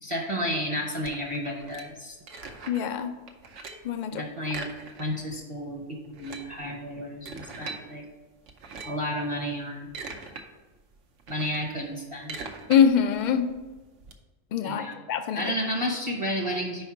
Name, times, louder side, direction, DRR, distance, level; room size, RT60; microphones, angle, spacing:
voice 1, 0.0-2.2 4.1-4.7 5.0-8.0 8.8-9.9 11.3-12.4 14.6-15.0 15.3-16.8, equal, 30° right, 0 dB, 0.7 m, -31 dB
sound 1, 1.0-3.0 3.3-3.9 4.5-5.4 5.6-5.7 6.0-7.8 8.5-9.1 9.6-10.4 10.8-14.1, right 4 dB, 80° right, 1.1 m, -41 dB
voice 2, 2.7-3.1 3.8-4.2 12.7-13.5 14.5-15.5, left 7 dB, 60° left, 8 dB, 0.5 m, -24 dB
5.3 x 4.3 x 5.8 m, 1.2 s
omnidirectional pair, 1.3 m